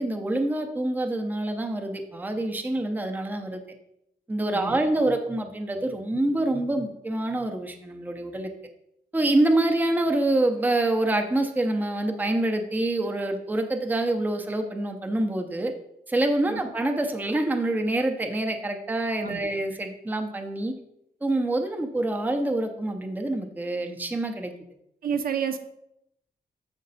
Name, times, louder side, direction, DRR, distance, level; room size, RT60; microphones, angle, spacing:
voice 1, 0.0-3.6 4.3-8.5 9.1-15.7 16.1-20.7 21.2-24.5, right 1 dB, 10° right, 4 dB, 0.6 m, -26 dB
voice 2, 4.4-4.8 16.4-16.6 19.2-19.4 25.0-25.6, right 7 dB, 60° right, 7 dB, 0.6 m, -30 dB
7.5 x 5.2 x 4.0 m, 0.80 s
wide cardioid pair, 170°, 17 cm